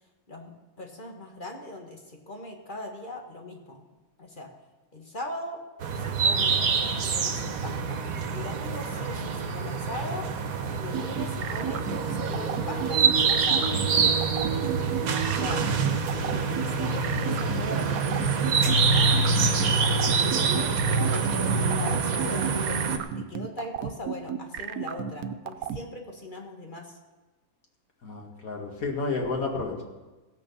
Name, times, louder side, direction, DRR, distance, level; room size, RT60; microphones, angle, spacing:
voice 1, 0.3-3.8 4.2-4.5 4.9-5.6 5.9-8.0 8.3-10.3 10.7-14.2 14.5-15.6 16.1-22.8 23.1-27.0, left 1 dB, 35° left, 2 dB, 1.5 m, -40 dB
sound 1, 5.8-23.0, right 4 dB, 75° right, 1.4 m, -25 dB
sound 2, 10.9-25.8, right 9 dB, 90° right, 1.2 m, -33 dB
voice 2, 28.0-29.8, left 3 dB, 75° left, 0 dB, 2.5 m, -32 dB
16.5 x 6.4 x 7.0 m, 1.2 s
omnidirectional pair, 1.5 m